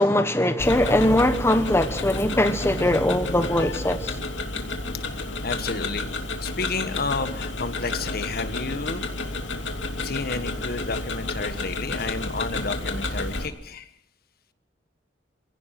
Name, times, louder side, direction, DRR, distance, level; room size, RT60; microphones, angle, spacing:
voice 1, 0.0-4.1, left 1 dB, 15° left, 1.2 m, -21 dB
Tick-tock, 0.6-13.5, left 2 dB, 80° left, 2.7 m, -31 dB
voice 2, 5.4-6.1 6.4-9.0 10.0-13.9, left 3 dB, 55° left, 1.5 m, -31 dB
26.5 x 17.5 x 6.0 m
head